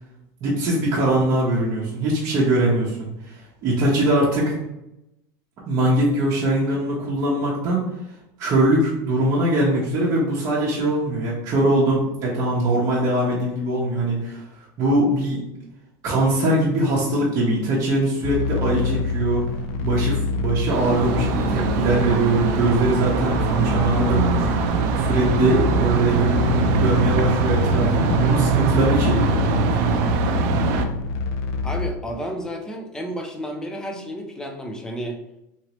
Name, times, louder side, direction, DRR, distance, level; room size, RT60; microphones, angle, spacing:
voice 1, 0.4-4.5 5.6-7.8 8.4-14.4 14.8-15.4 16.0-19.5 19.8-29.4 29.7-29.9, right 1 dB, 40° right, -6 dB, 0.8 m, -22 dB
sound 1, 18.2-31.9, left 4 dB, 70° left, 0.4 m, -27 dB
sound 2, 20.7-30.9, right 5 dB, 65° right, 0.4 m, -22 dB
voice 2, 31.6-35.2, equal, 5° left, 3 dB, 0.4 m, -31 dB
2.9 x 2.9 x 2.9 m, 0.86 s
supercardioid pair, 145°, 9 cm